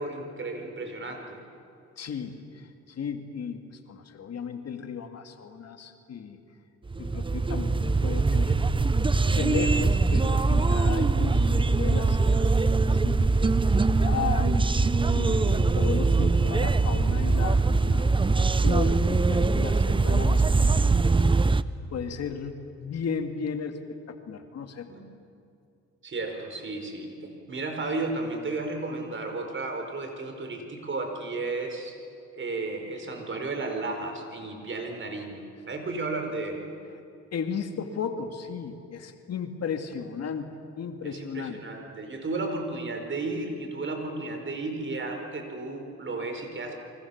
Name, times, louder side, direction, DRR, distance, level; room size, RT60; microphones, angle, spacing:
voice 1, 0.0-1.4 24.9-25.0 26.0-31.9 32.3-36.7 41.0-46.8, right 3 dB, 40° right, 4 dB, 5.1 m, -33 dB
voice 2, 2.0-6.4 7.0-8.6 9.2-12.5 12.8-14.7 15.1-18.3 18.6-20.8 21.9-24.9 37.3-40.5 40.8-41.6, left 6 dB, 55° left, 6 dB, 2.2 m, -35 dB
sound 1, 6.9-21.6, right 3 dB, 15° right, 0.7 m, -22 dB
30.0 x 24.5 x 7.3 m, 2.4 s
cardioid pair, 90°, 30 cm